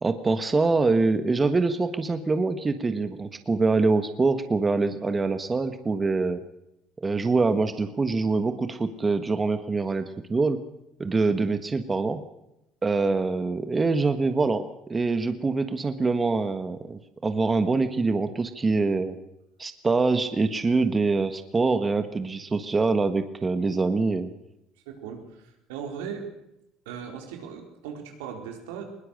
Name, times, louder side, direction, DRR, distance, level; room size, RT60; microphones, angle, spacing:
voice 1, 0.0-6.4 7.0-10.6 11.0-12.2 12.8-19.2 19.6-24.3, right 3 dB, 20° right, 9 dB, 1.4 m, -24 dB
voice 2, 11.1-11.4 24.9-26.3 26.9-28.8, right 7 dB, 90° right, 3 dB, 4.3 m, -38 dB
21.0 x 19.0 x 6.5 m, 0.86 s
supercardioid pair, 95°, 0 cm